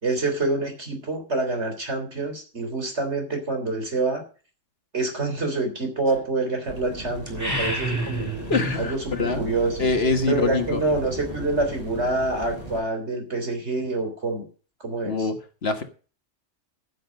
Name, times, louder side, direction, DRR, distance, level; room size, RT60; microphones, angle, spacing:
voice 1, 0.0-4.2 4.9-8.3 8.8-9.9 10.3-14.5 14.8-15.3, right 2 dB, 60° right, 4 dB, 3.9 m, -26 dB
sound 1, 6.6-12.8, right 1 dB, 30° right, 7.5 m, -38 dB
sound 2, 7.2-8.8, right 1 dB, 15° right, 2.7 m, -29 dB
voice 2, 8.5-9.5 9.8-10.8 15.0-15.8, left 4 dB, 55° left, 7 dB, 1.6 m, -25 dB
14.5 x 7.0 x 6.3 m, 0.37 s
omnidirectional pair, 1.3 m